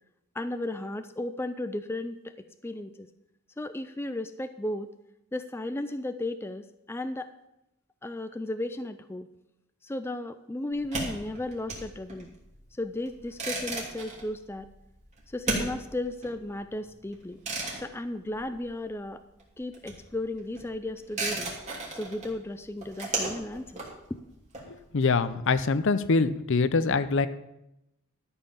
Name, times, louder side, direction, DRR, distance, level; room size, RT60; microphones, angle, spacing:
voice 1, 0.3-3.1 3.6-4.9 5.3-7.3 8.0-9.3 9.8-12.3 12.8-14.7 15.3-17.4 17.8-19.2 19.6-21.5 21.9-23.8 24.1-24.3, left 1 dB, 10° left, 9 dB, 0.4 m, -35 dB
sound 1, 10.7-19.1 19.3-25.1, right 2 dB, 30° right, 2.8 m, -36 dB
voice 2, 24.7-27.3, left 4 dB, 60° left, 13 dB, 0.6 m, -24 dB
13.0 x 5.6 x 7.0 m, 0.87 s
head